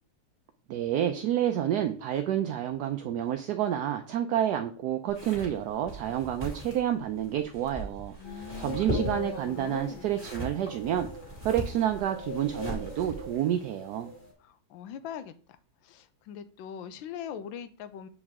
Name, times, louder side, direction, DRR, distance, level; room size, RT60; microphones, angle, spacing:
voice 1, 0.7-11.1 11.4-14.1, right 11 dB, 70° right, 6 dB, 1.0 m, -29 dB
sound 1, 5.1-13.3, right 1 dB, 5° left, 2.7 m, -39 dB
voice 2, 8.2-10.1 14.4-15.3 15.8-18.1, left 8 dB, 80° left, 12 dB, 1.4 m, -41 dB
sound 2, 8.2-14.3, left 3 dB, 25° left, 2.2 m, -42 dB
7.2 x 5.1 x 3.6 m, 0.40 s
omnidirectional pair, 2.1 m